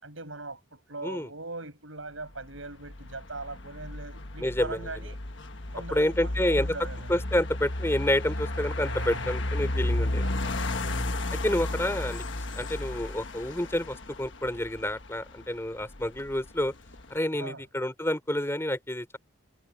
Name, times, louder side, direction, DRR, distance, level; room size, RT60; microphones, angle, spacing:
voice 1, 0.0-5.2 5.7-7.2 8.8-9.4 10.2-11.2 17.3-17.7, right 2 dB, 70° right, 7.3 m, -40 dB
sound 1, 2.3-17.2, left 1 dB, 60° left, 1.4 m, -33 dB
voice 2, 4.4-4.9 5.9-6.7 7.1-10.2 11.3-12.2 12.5-16.7 17.1-19.2, left 1 dB, 10° left, 3.3 m, -29 dB
head